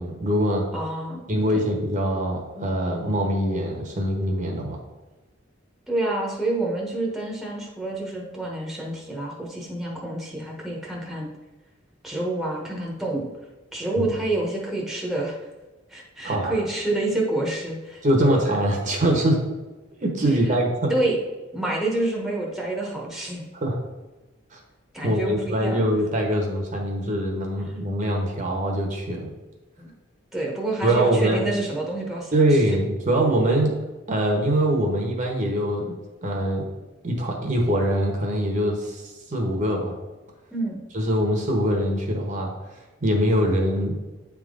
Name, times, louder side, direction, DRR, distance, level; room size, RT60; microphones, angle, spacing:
voice 1, 0.0-0.6 1.3-4.8 14.0-14.1 16.2-16.6 18.0-19.4 20.0-20.9 23.6-23.8 24.5-24.6 25.0-29.3 30.8-31.4 32.3-33.8 34.1-36.7 37.0-39.9 40.9-42.5 43.0-44.0, right 1 dB, 40° right, 1 dB, 1.1 m, -23 dB
voice 2, 0.7-1.2 1.5-1.6 5.9-11.3 12.0-13.3 13.7-15.4 15.9-18.4 20.9-21.2 21.5-23.4 24.9-25.9 29.8-29.9 30.3-32.3 40.5-40.8, right 2 dB, ahead, -3 dB, 1.1 m, -28 dB
8.6 x 3.6 x 3.8 m, 1.1 s
head